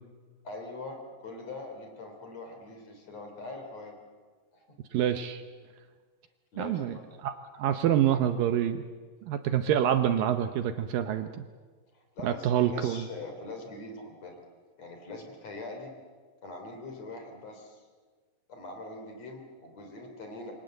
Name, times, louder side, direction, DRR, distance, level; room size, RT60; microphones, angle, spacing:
voice 1, 0.4-4.0 4.5-4.7 6.5-7.0 11.9-14.4 14.8-15.9 16.4-17.9 18.5-20.5, left 2 dB, 45° left, 4 dB, 4.3 m, -42 dB
voice 2, 4.9-5.4 6.6-8.8 9.3-11.4 12.2-13.0, right 10 dB, 75° right, 9 dB, 2.4 m, -27 dB
27.5 x 24.5 x 7.9 m, 1.5 s
omnidirectional pair, 4.5 m